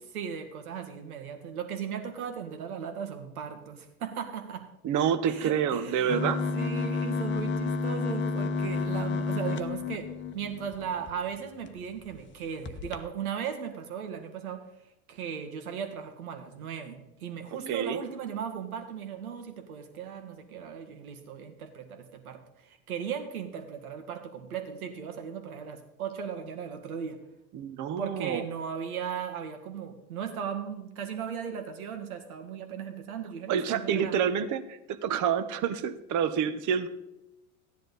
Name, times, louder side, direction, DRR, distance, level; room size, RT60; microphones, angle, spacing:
voice 1, 0.1-4.6 5.3-6.3 6.5-10.1 10.3-14.6 15.1-27.2 28.0-34.2, right 7 dB, 80° right, 6 dB, 1.9 m, -37 dB
voice 2, 4.8-6.4 17.7-18.0 27.5-28.5 33.5-36.9, right 8 dB, 45° right, 12 dB, 1.1 m, -28 dB
sound 1, 6.1-11.1 11.7-11.8 12.0-12.2 12.6-13.0, left 4 dB, 25° left, 0.9 m, -31 dB
13.5 x 10.5 x 4.1 m, 0.90 s
hypercardioid pair, 95°, 43 cm